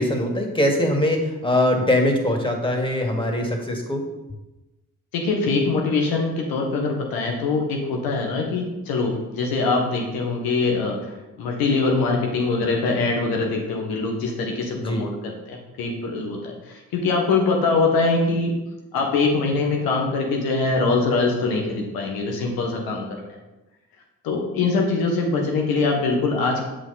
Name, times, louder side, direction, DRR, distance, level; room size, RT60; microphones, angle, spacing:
voice 1, 0.0-4.0 14.8-15.1, left 1 dB, 15° left, 2 dB, 2.2 m, -22 dB
voice 2, 5.1-11.0 11.4-18.6 18.9-23.4 24.2-26.6, left 3 dB, 85° left, 1 dB, 1.5 m, -23 dB
7.8 x 6.3 x 4.1 m, 1.1 s
hypercardioid pair, 45°, 36 cm